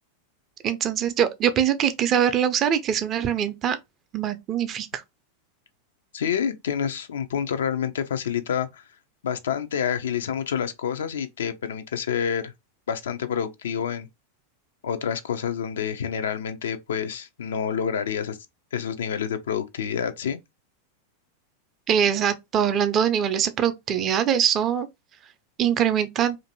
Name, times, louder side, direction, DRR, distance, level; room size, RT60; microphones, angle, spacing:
voice 1, 0.6-3.8 4.1-5.0 21.9-24.9 25.6-26.4, right 9 dB, 30° right, 0.4 m, -23 dB
voice 2, 6.1-8.8 9.2-12.5 12.9-14.1 14.8-18.4 18.7-20.4, left 8 dB, 60° left, 0.4 m, -28 dB
2.5 x 2.5 x 2.7 m
figure-of-eight pair, 90°, 0 cm